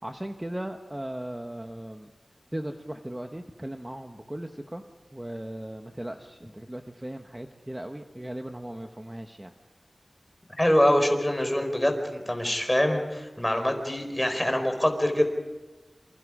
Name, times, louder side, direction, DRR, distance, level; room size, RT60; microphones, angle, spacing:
voice 1, 0.0-2.1 2.5-4.8 5.1-9.5, right 1 dB, 15° right, 5 dB, 1.2 m, -37 dB
voice 2, 10.6-15.3, left 1 dB, 15° left, 5 dB, 4.4 m, -24 dB
27.5 x 26.5 x 5.0 m, 1.2 s
wide cardioid pair, 75°, 0 cm